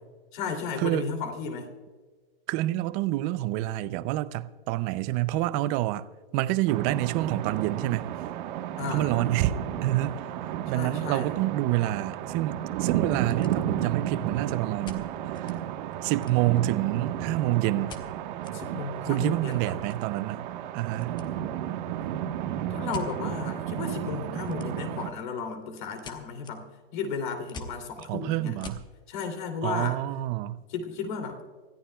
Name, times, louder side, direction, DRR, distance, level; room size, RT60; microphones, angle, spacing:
voice 1, 0.3-1.7 8.8-9.3 10.7-11.3 18.5-19.7 22.7-26.7 26.9-28.6 29.1-30.0 30.7-31.4, left 5 dB, 55° left, 2.9 m, -34 dB
voice 2, 2.5-6.1 6.3-8.1 8.9-9.5 9.8-10.3 10.7-15.6 16.0-18.0 19.0-20.4 20.7-21.2 28.1-28.8 29.6-30.6, right 15 dB, 25° right, 0.5 m, -27 dB
sound 1, 6.7-25.1, right 11 dB, 50° right, 1.3 m, -33 dB
sound 2, 13.1-14.0 14.8-15.6 15.9-16.7 17.9-18.6 18.9-19.0 19.3-21.3 21.6-21.9 22.9-23.1 24.4-25.0 25.4-28.9, left 3 dB, 15° left, 1.0 m, -46 dB
25.5 x 14.0 x 2.3 m
hypercardioid pair, 145°, 30 cm